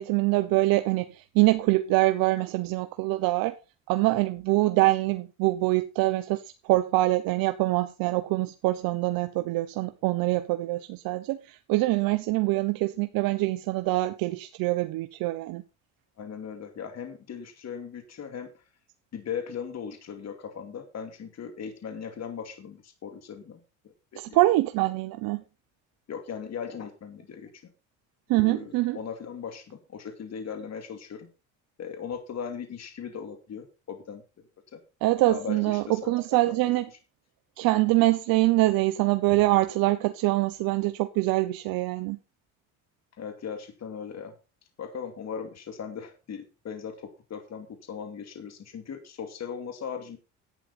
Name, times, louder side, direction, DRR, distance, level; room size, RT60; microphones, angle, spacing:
voice 1, 0.0-3.5 3.9-15.6 24.2-25.4 28.3-29.0 35.0-36.9 37.6-42.2, right 18 dB, 75° right, 0.9 m, -24 dB
voice 2, 16.2-18.5 19.1-23.6 24.1-24.6 26.1-27.5 28.3-31.3 31.8-34.2 34.7-34.8 35.3-36.6 36.9-37.0 43.2-44.3 44.8-50.2, left 7 dB, 50° left, 2.5 m, -38 dB
11.5 x 9.2 x 4.2 m
supercardioid pair, 85°, 35 cm